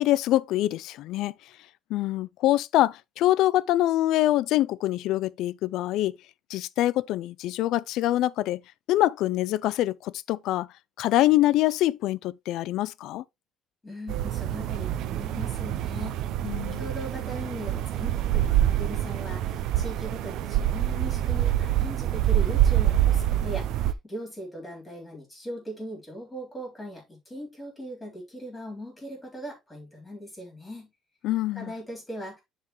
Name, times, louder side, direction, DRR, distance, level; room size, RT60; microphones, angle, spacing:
voice 1, 0.0-1.3 1.9-6.2 6.5-8.6 8.9-10.7 11.0-13.2 16.4-16.8 31.2-31.7, left 15 dB, 70° left, 0.3 m, -24 dB
voice 2, 13.8-16.2 16.7-30.9 31.5-32.4, equal, 10° left, 3.4 m, -39 dB
sound 1, 14.1-23.9, right 12 dB, 65° right, 0.5 m, -26 dB
10.5 x 3.7 x 3.0 m
cardioid pair, 155°, 0 cm